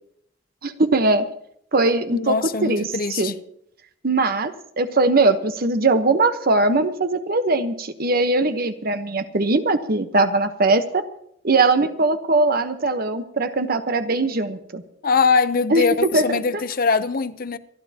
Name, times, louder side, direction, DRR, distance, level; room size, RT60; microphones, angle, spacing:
voice 1, 0.6-1.3 1.7-2.4 2.6-3.3 4.0-11.0 11.4-14.8 15.7-15.8 16.1-16.4, right 2 dB, 55° right, 1.1 m, -20 dB
voice 2, 2.1-3.3 15.0-17.6, left 5 dB, 50° left, 0.7 m, -22 dB
27.5 x 11.5 x 2.9 m
head